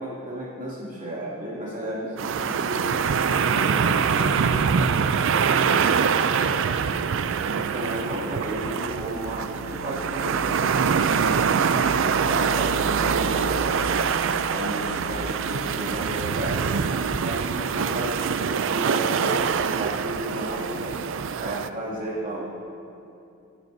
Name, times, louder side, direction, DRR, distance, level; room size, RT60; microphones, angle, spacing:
voice 1, 0.0-3.1 3.4-7.2 7.4-11.3 11.7-14.1 14.5-16.7 17.2-18.4 18.7-21.0 21.4-22.5, right 1 dB, 35° right, -7 dB, 2.5 m, -33 dB
sound 1, 2.2-21.7, right 6 dB, 60° right, 0.4 m, -24 dB
sound 2, 8.5-18.4, right 1 dB, 75° right, 0.9 m, -39 dB
24.5 x 9.6 x 2.8 m, 2.7 s
head